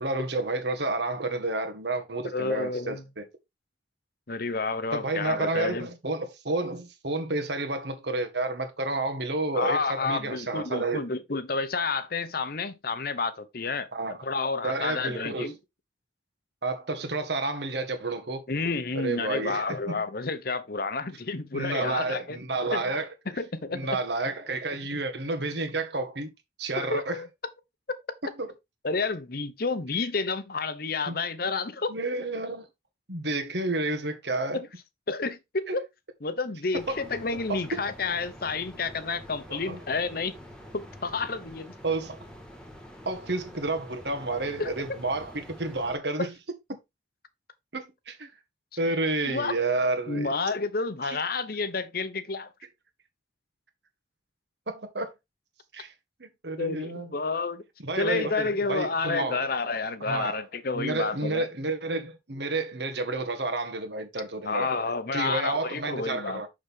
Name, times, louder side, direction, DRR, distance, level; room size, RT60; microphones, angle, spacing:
voice 1, 0.0-3.2 4.9-11.1 13.9-14.2 14.6-15.5 16.6-18.4 19.0-20.0 21.5-23.1 23.7-26.3 26.6-27.2 28.4-28.5 31.1-31.2 31.9-32.7 33.1-34.6 35.7-35.8 36.9-37.0 37.3-37.6 39.5-39.8 41.8-42.2 43.1-46.3 46.7-46.8 47.7-48.3 48.8-50.3 51.0-51.2 54.7-55.1 55.7-55.9 56.2-57.1 57.8-59.5 60.0-60.4 60.7-64.8 65.1-66.5, right 2 dB, 65° right, 1.7 m, -30 dB
voice 2, 2.3-3.0 4.3-5.9 9.5-13.9 14.2-15.5 18.5-22.4 22.7-22.8 23.4-23.8 26.8-27.3 28.8-31.9 34.5-34.7 35.1-35.8 36.2-40.3 40.7-41.7 44.6-44.7 49.2-49.5 50.1-52.5 56.6-57.6 58.0-61.5 64.5-66.4, left 4 dB, 55° left, 0.9 m, -30 dB
sound 1, 36.7-46.0, equal, 5° left, 1.6 m, -47 dB
6.6 x 6.3 x 3.6 m
head